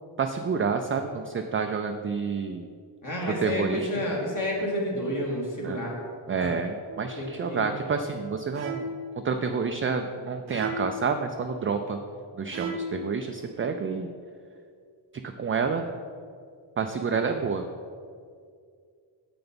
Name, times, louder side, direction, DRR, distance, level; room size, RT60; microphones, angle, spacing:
voice 1, 0.2-2.7 3.4-3.9 5.6-5.8 6.3-8.9 9.2-12.0 12.3-14.1 15.2-15.9 16.8-17.6, right 5 dB, 30° right, 6 dB, 0.4 m, -29 dB
voice 2, 3.0-5.9 6.4-6.5 7.2-7.7, left 1 dB, 40° left, -3 dB, 2.1 m, -30 dB
sound 1, 6.9-7.3 8.6-9.2 10.5-11.1 12.5-13.1, right 1 dB, 85° right, 1.0 m, -35 dB
6.8 x 5.9 x 5.2 m, 2.2 s
cardioid pair, 95°, 46 cm